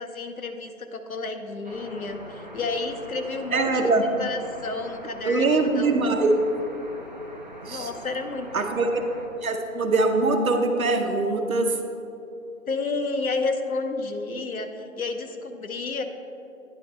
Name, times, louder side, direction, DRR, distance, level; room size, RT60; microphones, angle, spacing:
voice 1, 0.0-3.7 4.2-6.3 7.7-8.7 12.7-16.0, left 3 dB, 80° left, 6 dB, 0.8 m, -31 dB
sound 1, 1.6-9.3, right 1 dB, 35° right, 0.5 m, -43 dB
voice 2, 3.5-4.1 5.2-6.3 7.6-7.9 8.5-9.0 9.4-11.8, right 3 dB, 75° right, 5 dB, 0.8 m, -23 dB
9.8 x 4.1 x 3.2 m, 2.8 s
figure-of-eight pair, 160°, 42 cm